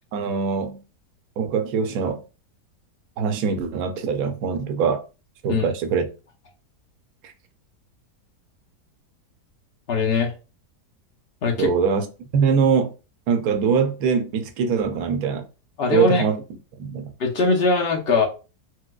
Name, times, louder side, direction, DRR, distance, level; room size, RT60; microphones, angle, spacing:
voice 1, 0.1-0.8 1.4-2.2 3.2-5.0 5.4-6.1 7.2-7.3 11.6-12.9 13.3-15.4 15.9-16.4 16.8-17.1, right 6 dB, 70° right, 1.0 m, -22 dB
voice 2, 9.9-10.3 11.4-11.7 15.8-16.2 17.2-18.3, left 4 dB, 55° left, 0.6 m, -21 dB
4.5 x 2.2 x 2.2 m
omnidirectional pair, 1.8 m